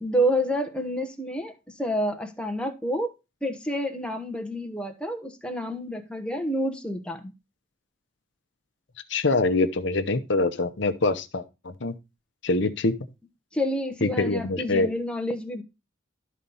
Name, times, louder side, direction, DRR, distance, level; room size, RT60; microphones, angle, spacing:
voice 1, 0.0-3.1 3.4-7.3 13.5-15.6, equal, 5° left, 1.0 m, -28 dB
voice 2, 9.1-11.4 11.8-11.9 12.4-12.9 14.0-14.9, left 2 dB, 65° left, 0.8 m, -24 dB
12.0 x 4.1 x 5.5 m
head